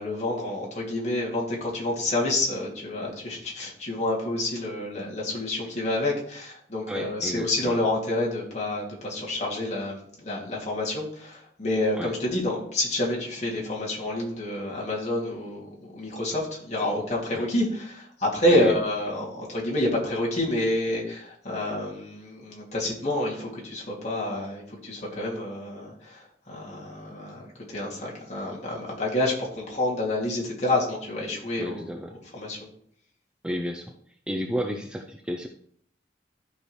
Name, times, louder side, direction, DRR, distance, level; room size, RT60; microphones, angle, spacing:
voice 1, 0.0-31.9 32.3-32.6, left 1 dB, 40° left, -4 dB, 2.4 m, -28 dB
voice 2, 6.9-7.8 12.0-12.1 17.3-17.4 18.5-18.7 31.6-32.1 33.4-33.9 34.3-35.5, equal, 5° right, 3 dB, 0.5 m, -31 dB
13.0 x 4.8 x 3.2 m, 0.65 s
head